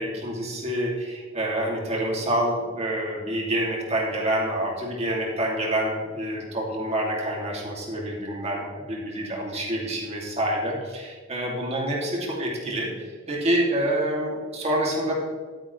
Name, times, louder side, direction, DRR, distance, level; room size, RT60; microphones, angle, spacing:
voice 1, 0.0-15.2, right 1 dB, 35° right, -2 dB, 2.6 m, -27 dB
12.0 x 9.6 x 3.3 m, 1.5 s
head